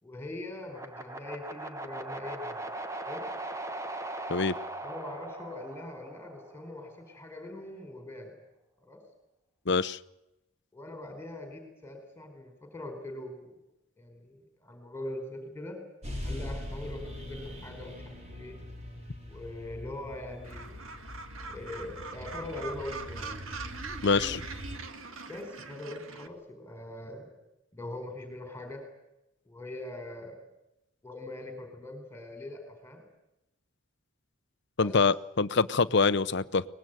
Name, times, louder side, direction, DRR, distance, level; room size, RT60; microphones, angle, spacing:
voice 1, 0.0-2.6 3.1-3.2 4.8-8.3 8.8-9.0 10.7-13.5 14.0-15.8 16.2-18.6 19.3-20.7 21.5-23.4 25.3-27.3 27.7-28.8 29.5-30.4 31.0-33.0 34.8-35.0, left 1 dB, 10° left, 4.6 m, -42 dB
sound 1, 0.7-6.8, right 2 dB, 15° right, 1.2 m, -39 dB
voice 2, 9.7-10.0 24.0-24.5 34.8-36.7, left 4 dB, 55° left, 0.8 m, -25 dB
sound 2, 16.0-24.8, left 1 dB, 35° right, 5.3 m, -42 dB
Gull seagull, 20.4-26.3, right 4 dB, 80° right, 2.1 m, -43 dB
24.0 x 20.0 x 9.2 m
head